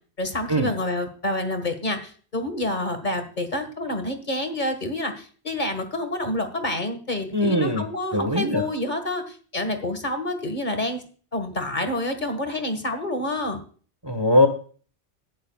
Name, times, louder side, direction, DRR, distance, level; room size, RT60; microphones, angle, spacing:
voice 1, 0.2-11.0 11.3-13.6, left 1 dB, 45° left, 7 dB, 1.9 m, -28 dB
voice 2, 7.3-7.8 8.1-8.6 14.0-14.5, left 1 dB, 25° right, 7 dB, 1.3 m, -20 dB
18.5 x 9.6 x 2.4 m, 0.41 s
omnidirectional pair, 1.1 m